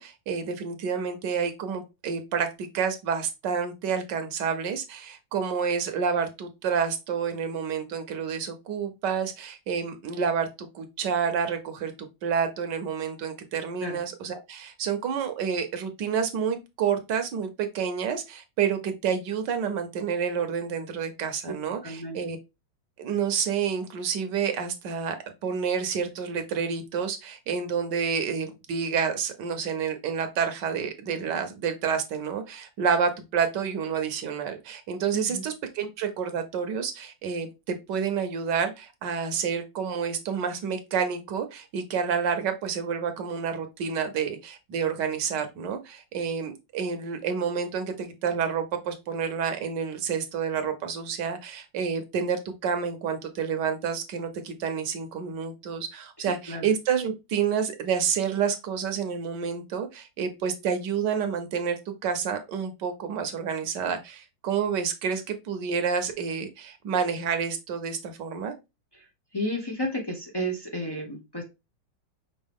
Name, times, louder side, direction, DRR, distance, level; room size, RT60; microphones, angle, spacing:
voice 1, 0.0-22.4 23.0-25.2 25.4-68.5, right 6 dB, 70° right, 1.4 m, -29 dB
voice 2, 21.5-22.2 35.1-35.5 56.2-56.7 68.9-69.1 69.3-71.4, equal, 35° left, 0.4 m, -33 dB
5.4 x 2.8 x 3.5 m
omnidirectional pair, 2.0 m